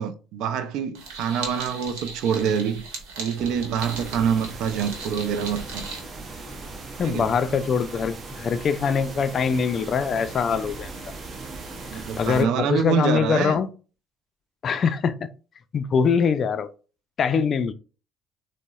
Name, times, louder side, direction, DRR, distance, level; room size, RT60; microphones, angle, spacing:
voice 1, 0.0-2.8 3.2-5.9 7.0-7.3 11.9-13.6, right 7 dB, 70° right, 0.3 m, -26 dB
sound 1, 0.9-6.0, right 4 dB, 90° right, 0.9 m, -38 dB
sound 2, 3.3-8.9, right 2 dB, 15° right, 1.3 m, -46 dB
sound 3, 3.8-12.4, right 3 dB, 40° right, 0.7 m, -39 dB
voice 2, 7.0-10.9 11.9-13.7 14.6-15.3 15.7-16.7 17.2-17.7, left 6 dB, 45° left, 0.3 m, -23 dB
3.8 x 2.0 x 2.3 m
supercardioid pair, 85°, 0 cm